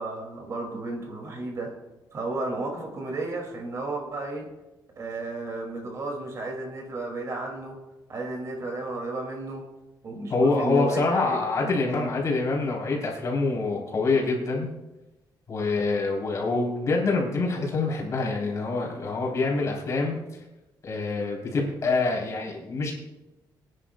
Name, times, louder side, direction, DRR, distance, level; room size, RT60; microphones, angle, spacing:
voice 1, 0.0-1.7 2.1-4.5 5.0-7.8 8.1-9.6 10.0-12.1, right 2 dB, 40° right, 1 dB, 2.3 m, -33 dB
voice 2, 10.3-14.7 15.5-20.2 20.8-22.9, left 3 dB, 40° left, -2 dB, 3.5 m, -26 dB
24.5 x 10.0 x 2.3 m, 1.0 s
cardioid pair, 165°, 8 cm